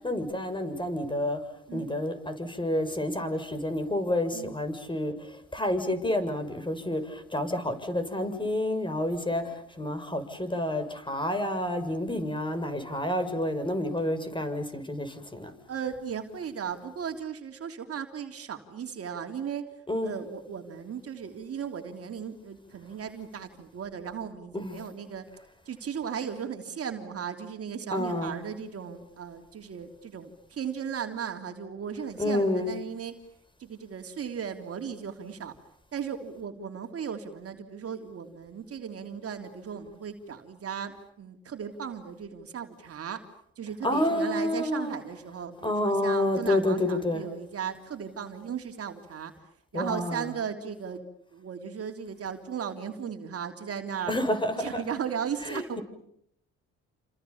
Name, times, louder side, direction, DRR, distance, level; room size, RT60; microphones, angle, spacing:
voice 1, 0.0-1.4 1.7-15.5 19.9-20.2 24.5-24.8 27.9-28.4 32.2-32.7 43.8-45.0 45.6-47.2 49.7-50.3 54.1-54.8 55.5-55.8, left 1 dB, 15° left, 7.2 m, -29 dB
voice 2, 15.7-19.7 20.0-25.3 25.7-33.1 33.6-35.6 35.9-43.2 43.6-49.3 49.7-51.0 51.3-54.1 54.6-55.8, right 7 dB, 50° right, 3.3 m, -36 dB
30.0 x 27.5 x 7.2 m
supercardioid pair, 70°, 30 cm